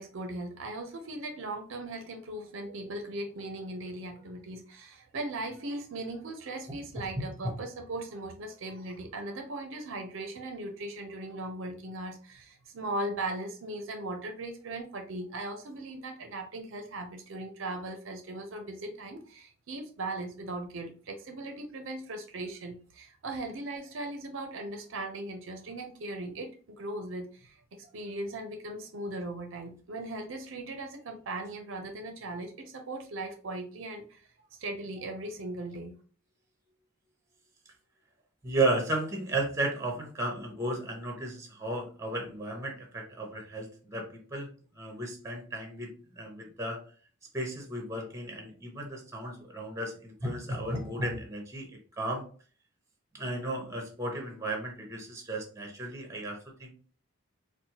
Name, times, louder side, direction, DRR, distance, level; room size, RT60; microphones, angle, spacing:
voice 1, 0.0-34.2 34.6-35.9, right 2 dB, 60° right, 4 dB, 0.5 m, -38 dB
voice 2, 7.2-7.5 38.4-44.5 44.8-46.8 47.3-51.7 52.0-52.3 53.1-56.7, right 2 dB, 15° right, 1 dB, 0.8 m, -34 dB
4.2 x 2.1 x 2.9 m, 0.41 s
head